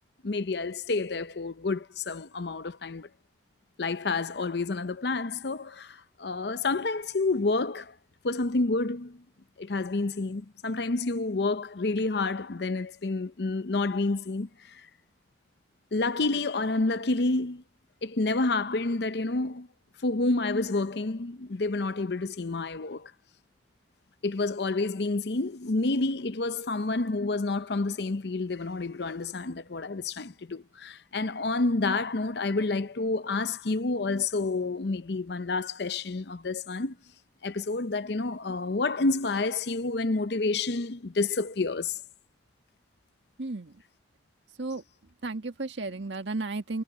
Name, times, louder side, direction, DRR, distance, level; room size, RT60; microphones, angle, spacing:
voice 1, 0.2-3.1 3.8-7.9 8.2-9.2 9.6-14.9 15.9-17.6 18.0-19.7 20.0-23.1 24.2-37.0 37.4-42.0, left 3 dB, 60° left, 0.7 m, -29 dB
voice 2, 43.4-43.8 44.5-44.8 45.2-46.8, right 3 dB, 75° right, 1.7 m, -33 dB
head